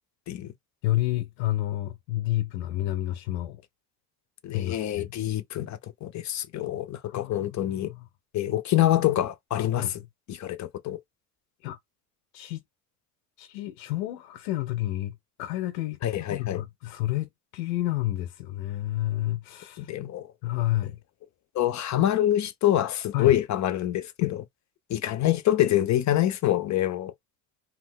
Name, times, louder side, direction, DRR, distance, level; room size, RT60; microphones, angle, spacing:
voice 1, 0.8-3.6 4.5-5.2 7.0-8.1 9.8-9.9 11.6-11.8 12.3-12.6 13.4-16.0 16.3-19.9 20.4-21.0 23.1-23.3 24.2-24.3 26.6-26.8, left 15 dB, 85° left, 0.6 m, -30 dB
voice 2, 4.4-7.9 8.3-10.0 10.3-11.0 16.0-16.6 19.8-20.3 21.5-24.4 24.9-27.1, left 12 dB, 40° left, 0.5 m, -26 dB
2.4 x 2.2 x 3.6 m
hypercardioid pair, 65°, 47 cm